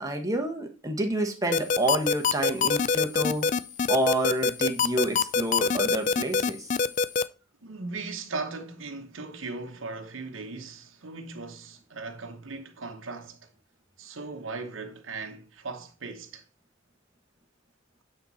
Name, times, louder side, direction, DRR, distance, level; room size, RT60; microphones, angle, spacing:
voice 1, 0.0-3.5 3.9-6.7, right 1 dB, 15° right, 1.3 m, -28 dB
sound 1, 1.5-7.2, left 5 dB, 40° left, 0.3 m, -23 dB
voice 2, 7.6-13.4 14.0-16.4, right 3 dB, 75° right, 1.0 m, -38 dB
8.9 x 4.4 x 4.1 m
head